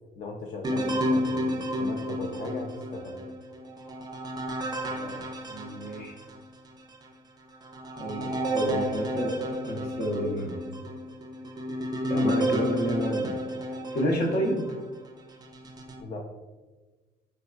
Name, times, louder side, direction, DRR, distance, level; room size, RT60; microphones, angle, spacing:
voice 1, 0.2-3.2 16.0-16.3, left 3 dB, 45° left, -1 dB, 0.5 m, -38 dB
sound 1, 0.6-6.4 6.9-7.0 7.6-14.8 15.4-16.0, equal, 25° right, 0.4 m, -31 dB
voice 2, 4.8-5.2 5.5-6.2 8.0-10.6 12.1-13.3 13.7-14.7, equal, 60° left, 1 dB, 0.9 m, -30 dB
4.1 x 3.4 x 2.4 m, 1.2 s
cardioid pair, 110°, 17 cm